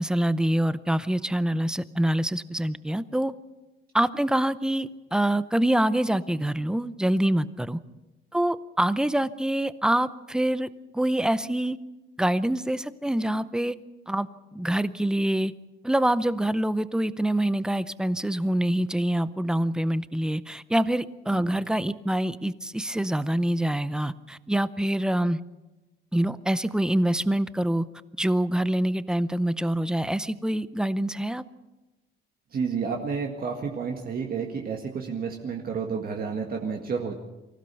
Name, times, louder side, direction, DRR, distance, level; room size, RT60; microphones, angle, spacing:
voice 1, 0.0-3.3 3.9-7.8 8.3-10.7 10.9-11.8 12.2-13.7 14.1-15.5 15.8-25.4 26.1-27.8 28.2-31.4, right 1 dB, 5° right, 15 dB, 0.6 m, -25 dB
voice 2, 32.5-37.1, right 5 dB, 45° right, 1 dB, 1.9 m, -30 dB
24.5 x 16.0 x 6.9 m, 1.1 s
cardioid pair, 155°, 21 cm